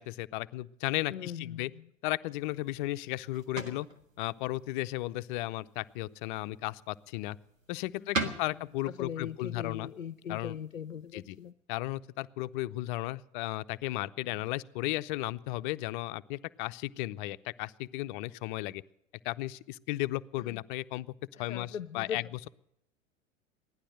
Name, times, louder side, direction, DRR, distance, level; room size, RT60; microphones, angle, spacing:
voice 1, 0.0-1.7 2.0-3.9 4.2-7.4 7.7-9.9 10.3-10.6 11.1-11.4 11.7-18.8 19.2-21.1 21.4-22.4, left 18 dB, 40° left, 15 dB, 0.5 m, -35 dB
voice 2, 1.1-1.6 8.1-8.4 9.0-11.5 21.3-22.2, left 8 dB, 85° left, 15 dB, 0.5 m, -40 dB
sound 1, 2.4-11.5, right 3 dB, 85° right, 1.5 m, -43 dB
16.0 x 11.5 x 7.6 m, 0.79 s
figure-of-eight pair, 85°, 39 cm